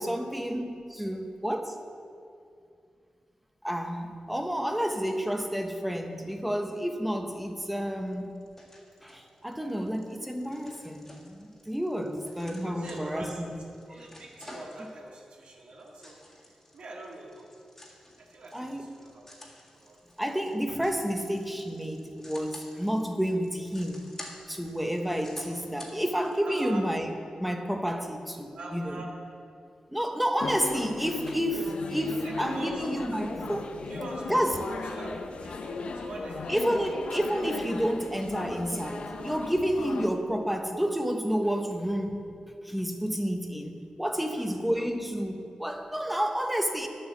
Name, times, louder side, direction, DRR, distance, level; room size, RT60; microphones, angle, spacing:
voice 1, 0.0-1.8 3.6-8.3 9.0-13.5 18.5-18.9 20.2-24.1 24.5-29.0 29.9-33.8 34.3-34.5 36.5-42.3 42.6-46.9, equal, 5° right, 4 dB, 1.0 m, -30 dB
sound 1, 8.1-26.4, left 1 dB, 20° left, 1.9 m, -51 dB
voice 2, 12.6-17.5 18.2-19.3 19.7-20.0 26.4-26.8 28.5-29.1 32.2-33.1 33.8-36.6 44.2-44.5, right 2 dB, 75° right, -3 dB, 1.8 m, -44 dB
sound 2, 30.4-40.1, left 4 dB, 65° left, 0.7 m, -37 dB
11.0 x 7.6 x 7.3 m, 2.4 s
wide cardioid pair, 110°, 2 cm